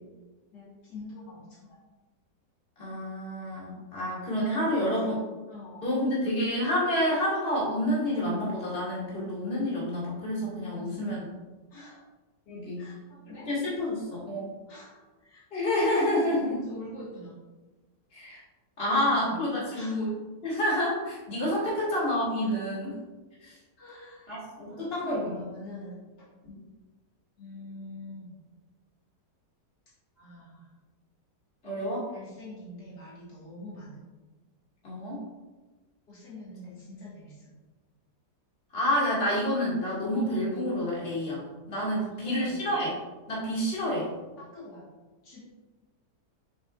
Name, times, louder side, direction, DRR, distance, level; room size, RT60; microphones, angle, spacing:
voice 1, 0.5-1.8 4.6-5.1 5.5-6.4 10.6-11.2 11.7-12.0 12.8-13.5 14.7-15.4 16.7-17.4 18.9-20.1 21.6-21.8 22.4-22.9 23.8-26.3 27.4-28.4 30.2-30.7 32.1-34.1 36.1-37.5 42.0-42.7 44.4-44.9 45.2-45.4, left 2 dB, 75° left, -7 dB, 2.5 m, -45 dB
voice 2, 2.8-5.2 5.8-11.3 12.5-12.9 13.3-14.5 15.5-16.6 18.1-18.4 18.8-20.1 20.4-22.9 23.4-23.5 24.3-25.4 26.4-26.7 31.6-32.1 34.8-35.2 38.7-43.0 43.3-44.1, left 1 dB, 35° left, -7 dB, 2.4 m, -29 dB
7.5 x 6.9 x 2.5 m, 1.2 s
omnidirectional pair, 1.8 m